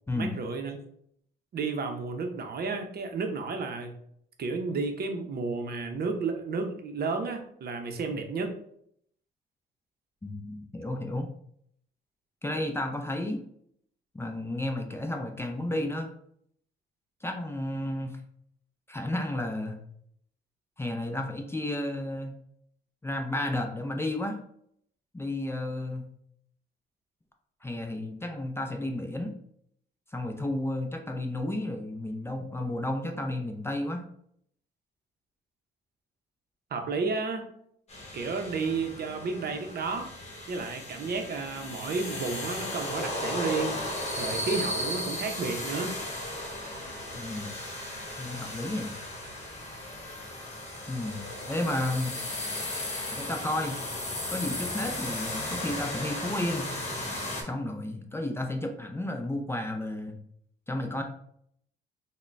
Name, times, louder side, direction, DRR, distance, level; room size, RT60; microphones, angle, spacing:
voice 1, 0.1-0.8 1.5-3.9 4.4-8.5 36.7-37.5 38.1-40.1 40.5-43.8 44.2-45.9, right 4 dB, 50° right, 5 dB, 0.6 m, -32 dB
voice 2, 10.2-11.3 12.4-13.4 14.1-16.1 17.2-18.2 18.9-19.8 20.8-22.3 23.0-24.4 25.1-26.1 27.6-29.3 30.1-34.1 47.1-47.6 48.2-48.9 50.9-52.2 53.1-53.8 54.3-56.7 57.4-60.2 60.7-61.0, left 1 dB, 10° left, 4 dB, 0.4 m, -32 dB
sound 1, 37.9-57.4, left 1 dB, 35° left, 1.2 m, -36 dB
3.7 x 2.1 x 3.3 m, 0.68 s
cardioid pair, 90°, 20 cm